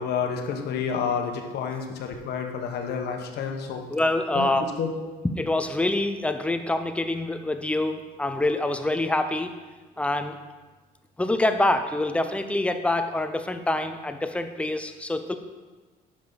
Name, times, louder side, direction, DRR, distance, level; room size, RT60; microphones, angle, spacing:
voice 1, 0.0-3.8 4.3-4.5 4.8-4.9, left 6 dB, 70° left, 3 dB, 1.3 m, -29 dB
voice 2, 3.9-4.7 5.4-9.5 10.0-10.4 11.2-15.4, left 2 dB, 5° left, 8 dB, 0.6 m, -26 dB
10.5 x 6.6 x 4.1 m, 1.3 s
cardioid pair, 110°, 17 cm